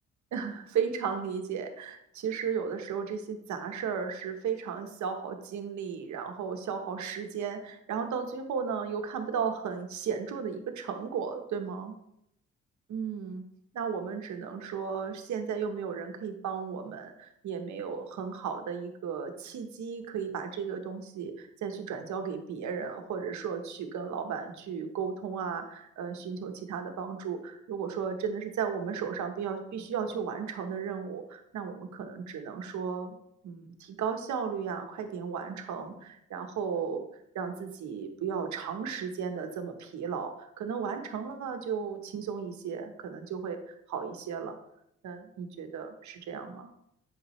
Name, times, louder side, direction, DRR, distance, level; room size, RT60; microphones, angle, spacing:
voice 1, 0.3-11.9 12.9-13.4 13.7-33.1 33.4-37.1 37.3-44.6 45.0-46.7, right 6 dB, 70° right, 5 dB, 1.2 m, -35 dB
8.1 x 6.0 x 3.2 m, 0.78 s
cardioid pair, 90°, 30 cm